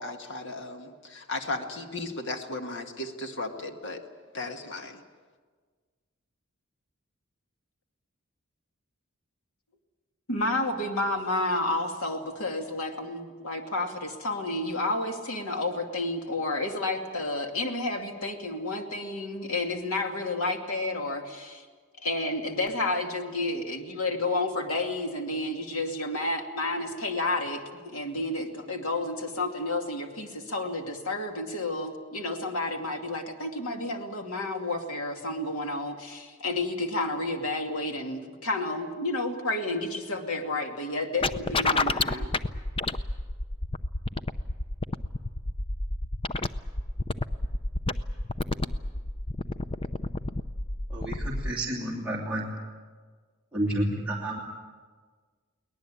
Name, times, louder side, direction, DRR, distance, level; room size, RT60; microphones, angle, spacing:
voice 1, 0.0-4.0 4.3-5.0, left 2 dB, 60° left, 5 dB, 1.9 m, -35 dB
voice 2, 10.3-21.6 22.0-42.3, left 2 dB, 85° left, 3 dB, 2.6 m, -31 dB
sound 1, 41.2-51.5, left 2 dB, 25° left, 0.6 m, -30 dB
voice 3, 50.9-52.5 53.5-54.4, right 1 dB, 5° right, -6 dB, 2.7 m, -30 dB
23.0 x 19.0 x 8.7 m, 1.5 s
head